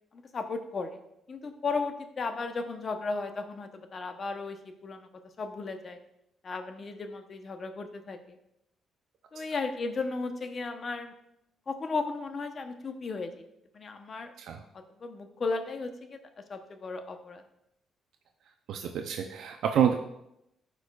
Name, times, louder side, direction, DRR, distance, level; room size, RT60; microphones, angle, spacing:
voice 1, 0.1-1.0 1.3-5.1 5.4-6.0 6.4-8.4 9.3-11.1 11.7-13.4 13.7-14.3 14.7-17.4, left 4 dB, 45° left, 7 dB, 0.8 m, -35 dB
voice 2, 18.7-19.9, right 8 dB, 75° right, 4 dB, 0.5 m, -27 dB
12.0 x 4.7 x 2.3 m, 0.81 s
cardioid pair, 90°, 0 cm